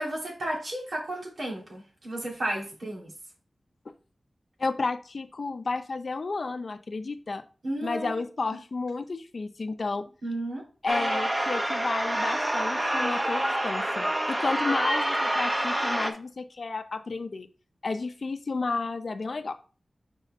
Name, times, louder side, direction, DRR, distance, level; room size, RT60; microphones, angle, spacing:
voice 1, 0.0-3.1 7.6-8.1 10.2-10.6, right 1 dB, 80° right, -2 dB, 2.5 m, -33 dB
voice 2, 4.6-7.4 7.8-10.1 10.8-17.5 17.8-19.6, left 3 dB, 60° left, 9 dB, 0.6 m, -32 dB
sound 1, 10.9-16.1, right 1 dB, 20° right, 0.9 m, -27 dB
6.5 x 4.5 x 3.2 m, 0.36 s
wide cardioid pair, 85°, 0 cm